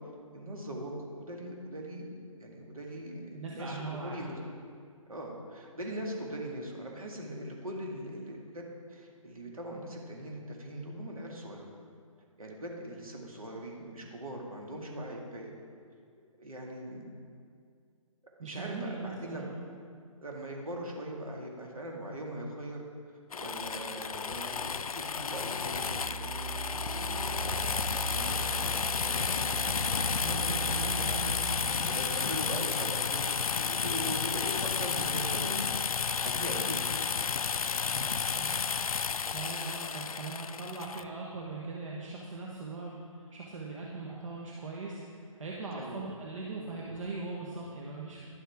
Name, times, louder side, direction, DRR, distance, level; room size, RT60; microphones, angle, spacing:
voice 1, 0.3-2.1 2.4-4.4 5.1-11.6 12.4-15.5 16.4-17.0 18.4-19.5 20.2-22.8 23.4-26.3 26.9-27.6 28.1-30.9 31.8-35.6 36.2-36.9 45.7-46.0, right 1 dB, 80° right, -1 dB, 2.1 m, -40 dB
voice 2, 3.3-4.2 18.4-19.5 30.2-32.0 37.9-38.5 39.3-43.0 43.3-48.2, right 3 dB, 65° right, -3 dB, 1.3 m, -40 dB
sound 1, 23.3-41.0, left 6 dB, 85° left, 0.4 m, -32 dB
sound 2, 25.8-33.3, right 4 dB, 25° right, 1.3 m, -39 dB
11.0 x 7.3 x 3.5 m, 2.2 s
figure-of-eight pair, 140°, 18 cm